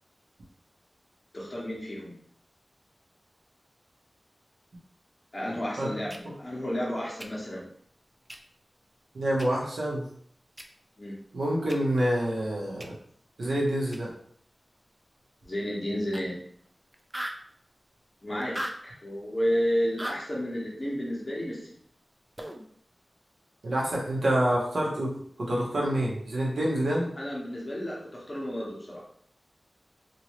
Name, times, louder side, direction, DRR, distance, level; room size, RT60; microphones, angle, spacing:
voice 1, 1.3-2.2 5.3-7.7 11.0-11.1 15.4-16.4 18.2-18.6 18.8-21.7 27.2-29.0, equal, 25° left, -5 dB, 1.2 m, -31 dB
sound 1, 6.1-6.2 7.2-7.3 8.3-8.4 9.4-9.5 10.6-10.7 11.7-11.8 12.8-12.9 13.9-14.0 16.1-16.2 16.5-16.6 16.9-17.4 18.4-18.8 20.0-20.2 22.4-22.7, right 1 dB, 10° right, 0.4 m, -36 dB
voice 2, 9.1-10.1 11.3-13.0 13.4-14.1 23.6-27.1, right 1 dB, 85° right, -3 dB, 1.0 m, -27 dB
2.9 x 2.7 x 3.0 m, 0.62 s
wide cardioid pair, 95°, 0 cm